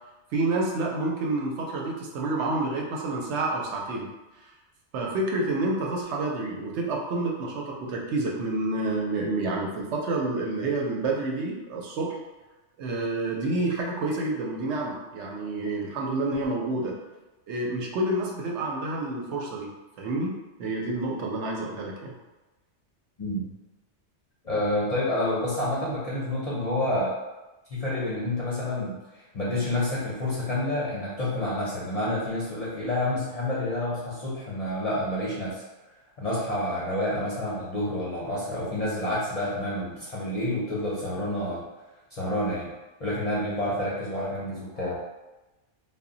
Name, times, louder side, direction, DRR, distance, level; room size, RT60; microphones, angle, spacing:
voice 1, 0.3-4.1 4.4-4.5 4.9-12.2 12.8-16.9 17.5-19.7 20.0-22.1, right 2 dB, 75° right, -1 dB, 0.8 m, -29 dB
voice 2, 24.4-27.1 27.7-35.6 36.2-41.6 42.1-42.7 43.0-45.0, left 1 dB, 45° left, -8 dB, 0.5 m, -29 dB
2.1 x 2.1 x 3.7 m, 1.1 s
omnidirectional pair, 1.2 m